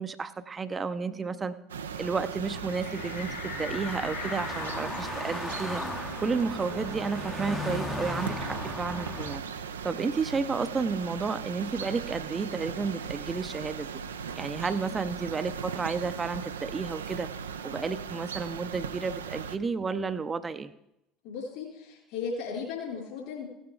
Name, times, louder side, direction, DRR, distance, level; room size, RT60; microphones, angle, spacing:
voice 1, 0.0-1.6 2.0-5.8 6.2-9.4 9.8-13.9 14.4-17.3 17.6-20.7, right 4 dB, 25° right, 12 dB, 0.6 m, -32 dB
sound 1, 1.7-19.6, right 6 dB, 80° right, 0.5 m, -38 dB
sound 2, 2.5-9.4, left 3 dB, 10° left, 0.8 m, -38 dB
sound 3, 2.6-7.8 8.2-8.3 8.6-10.3, left 4 dB, 80° left, 3.7 m, -42 dB
voice 2, 21.2-23.5, left 5 dB, 60° left, -2 dB, 4.5 m, -36 dB
16.0 x 9.0 x 3.5 m, 0.85 s
figure-of-eight pair, 65°, 0 cm